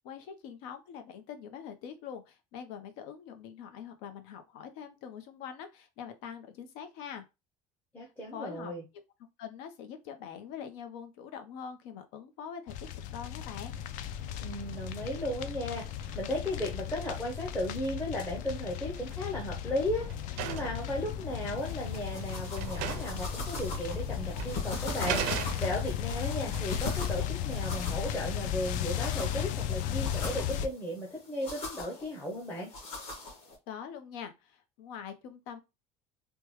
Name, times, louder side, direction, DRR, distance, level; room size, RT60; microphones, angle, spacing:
voice 1, 0.0-7.3 8.3-8.7 9.4-12.7 13.1-13.7 33.7-35.6, left 8 dB, 85° left, 0.8 m, -44 dB
voice 2, 7.9-8.8 14.4-20.1 20.4-32.7, left 1 dB, 10° left, 0.6 m, -35 dB
sound 1, 12.7-30.7, left 10 dB, 55° left, 0.4 m, -35 dB
sound 2, 18.6-19.2 19.5-20.9 21.8-21.9 22.2-22.3 22.6-23.2 23.5-23.6 24.4-24.5 25.1-26.0, right 10 dB, 70° right, 0.5 m, -36 dB
sound 3, 21.6-33.6, left 1 dB, 40° left, 1.3 m, -42 dB
3.4 x 2.2 x 3.0 m
cardioid pair, 175°, 15 cm